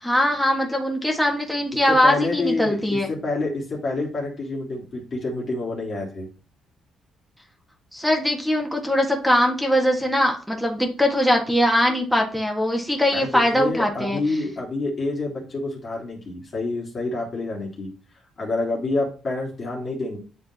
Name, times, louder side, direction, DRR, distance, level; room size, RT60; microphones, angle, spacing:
voice 1, 0.0-3.1 7.9-14.2, equal, ahead, 2 dB, 1.6 m, -21 dB
voice 2, 1.9-6.3 13.1-17.9 18.4-20.2, left 2 dB, 40° left, -2 dB, 2.2 m, -27 dB
8.8 x 3.7 x 2.9 m, 0.37 s
cardioid pair, 90°, 0 cm